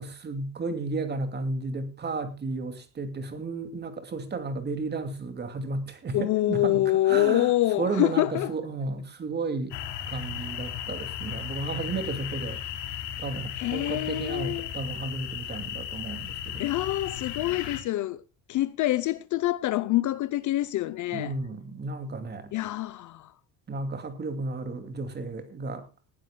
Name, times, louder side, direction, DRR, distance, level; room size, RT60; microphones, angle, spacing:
voice 1, 0.0-7.5 7.8-9.7 10.1-12.6 13.2-16.6 21.1-22.5 23.7-25.9, right 3 dB, 20° right, 2.6 m, -33 dB
voice 2, 6.1-8.5 13.5-14.7 16.6-18.2 18.5-21.3 22.5-23.3, left 15 dB, 40° left, 0.7 m, -26 dB
sound 1, 9.7-17.8, left 10 dB, 60° left, 3.4 m, -36 dB
20.5 x 15.5 x 2.3 m
cardioid pair, 165°, 45 cm